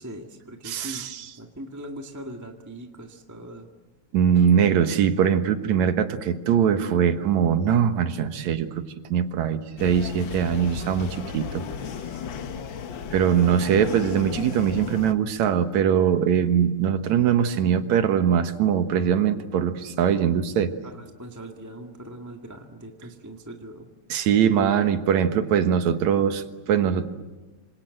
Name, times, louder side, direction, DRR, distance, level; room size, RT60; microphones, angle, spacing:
voice 1, 0.0-1.0 1.4-3.7 20.8-23.9, right 1 dB, 10° right, 3 dB, 1.2 m, -40 dB
voice 2, 0.6-1.3 4.1-8.8 9.1-11.6 13.1-20.7 24.1-27.2, right 8 dB, 70° right, 8 dB, 2.6 m, -22 dB
sound 1, 9.8-15.1, left 7 dB, 55° left, 1.4 m, -35 dB
27.0 x 26.5 x 7.8 m, 1.2 s
omnidirectional pair, 3.4 m